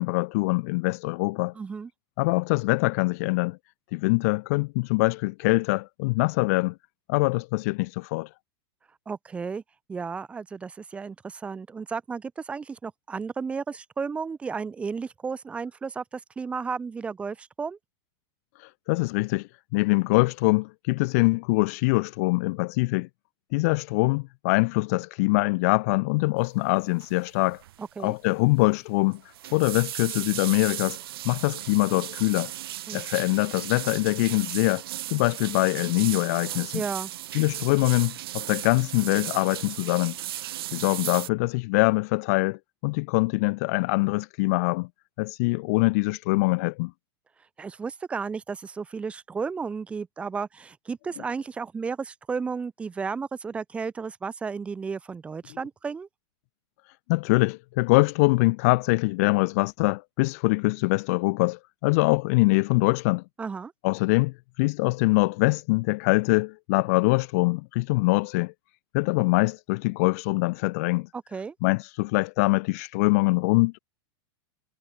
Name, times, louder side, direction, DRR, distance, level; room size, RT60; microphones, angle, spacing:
voice 1, 0.0-1.5 2.2-3.6 3.9-6.7 7.1-8.3 18.6-23.1 23.5-27.6 28.0-29.2 29.5-31.0 31.2-32.5 32.9-34.8 35.1-36.8 37.3-40.2 40.7-44.9 45.2-46.9 57.1-63.2 63.8-68.5 68.9-71.1 71.6-73.8, left 26 dB, 35° left, 0.7 m, -24 dB
voice 2, 1.5-1.9 9.1-9.6 9.9-17.8 27.8-28.1 32.9-33.0 36.7-37.1 47.6-56.1 63.4-63.7 71.1-71.5, right 5 dB, 10° right, 1.3 m, -33 dB
sound 1, 27.0-27.2 27.5-27.8 28.1-28.2 29.1-41.3, right 14 dB, 60° right, 4.0 m, -36 dB
supercardioid pair, 180°, 14 cm